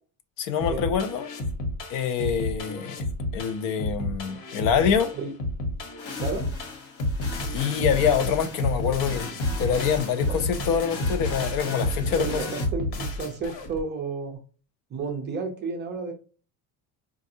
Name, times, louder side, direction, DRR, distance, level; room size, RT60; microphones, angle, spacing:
voice 1, 0.4-1.3 1.9-3.0 3.3-5.1 7.5-9.3 9.6-12.4, left 7 dB, 55° left, 0.7 m, -25 dB
sound 1, 0.6-13.8, left 1 dB, 85° left, 1.2 m, -30 dB
sound 2, 6.0-12.7, left 4 dB, 35° left, 1.0 m, -40 dB
voice 2, 12.1-14.4 14.9-16.1, right 4 dB, 25° right, 0.5 m, -32 dB
5.0 x 2.5 x 2.7 m
cardioid pair, 175°, 40 cm